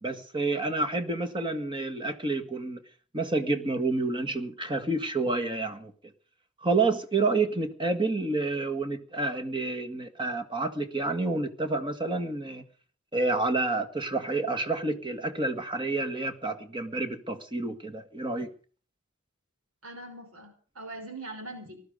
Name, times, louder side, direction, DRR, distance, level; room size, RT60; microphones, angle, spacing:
voice 1, 0.0-2.8 3.1-5.9 6.6-12.6 13.1-18.5, right 3 dB, 25° right, 8 dB, 1.9 m, -29 dB
voice 2, 19.8-21.8, right 2 dB, 80° right, 5 dB, 5.3 m, -42 dB
19.5 x 13.0 x 5.2 m, 0.41 s
head